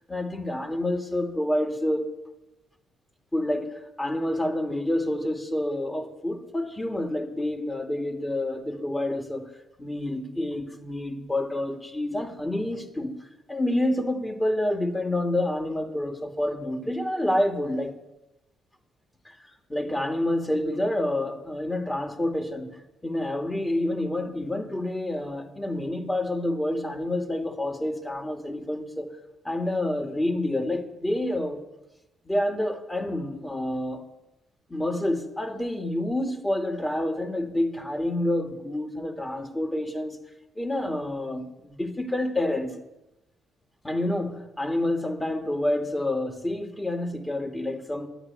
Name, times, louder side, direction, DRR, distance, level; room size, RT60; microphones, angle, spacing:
voice 1, 0.1-2.1 3.3-9.5 9.8-13.1 13.5-17.9 19.2-19.4 19.7-22.7 23.0-29.1 29.4-31.6 32.2-34.1 34.7-40.2 40.6-42.7 43.8-48.1, left 1 dB, 15° left, 2.5 m, -28 dB
12.0 x 11.0 x 9.6 m
cardioid pair, 75°, 0 cm